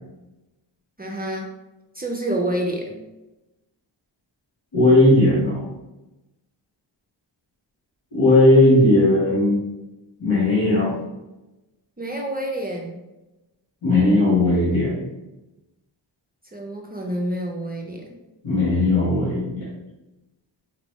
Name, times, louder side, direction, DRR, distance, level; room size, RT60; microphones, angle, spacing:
voice 1, 1.0-1.5 1.9-3.0 12.0-13.0 16.5-18.2, right 1 dB, 20° right, 0 dB, 0.5 m, -28 dB
voice 2, 4.7-5.6 8.1-9.6 10.2-10.9 13.8-15.0 18.4-19.7, left 2 dB, 80° left, -9 dB, 1.4 m, -17 dB
3.5 x 3.2 x 3.1 m, 1.0 s
wide cardioid pair, 120°, 45 cm